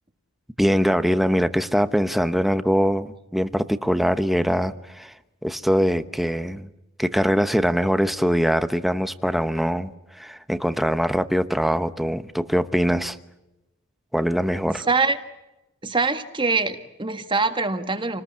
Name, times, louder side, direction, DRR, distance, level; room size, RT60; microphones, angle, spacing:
voice 1, 0.6-5.1 5.4-6.7 7.0-13.2 14.1-14.8, equal, ahead, 11 dB, 0.9 m, -22 dB
voice 2, 14.7-15.2 15.8-18.2, right 4 dB, 20° right, 8 dB, 1.7 m, -24 dB
28.5 x 20.0 x 8.5 m, 0.98 s
head